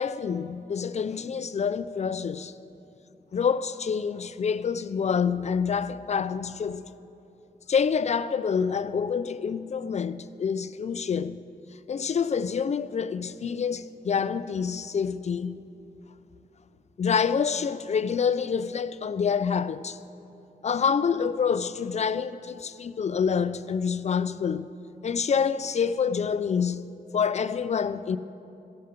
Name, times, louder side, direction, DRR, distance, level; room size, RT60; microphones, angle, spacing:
voice 1, 0.0-2.5 3.3-6.9 7.7-11.4 11.9-15.6 17.0-20.0 20.6-24.7 25.0-28.2, left 6 dB, 45° left, 0.4 m, -27 dB
15.5 x 11.0 x 5.2 m
wide cardioid pair, 155°, 16 cm